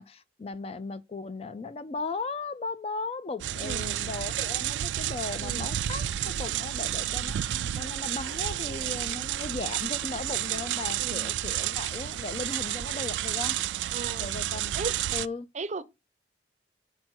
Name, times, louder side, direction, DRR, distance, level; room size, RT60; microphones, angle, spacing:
voice 1, 0.0-6.1 6.4-13.6 14.2-14.7 15.1-15.5, left 3 dB, 35° left, 0.4 m, -37 dB
sound 1, 3.4-15.3, right 12 dB, 85° right, 0.3 m, -31 dB
voice 2, 3.6-4.0 5.4-5.7 11.0-11.3 13.9-14.3 14.7-15.0 15.5-15.8, right 3 dB, 40° right, 0.6 m, -36 dB
6.0 x 4.4 x 4.4 m
head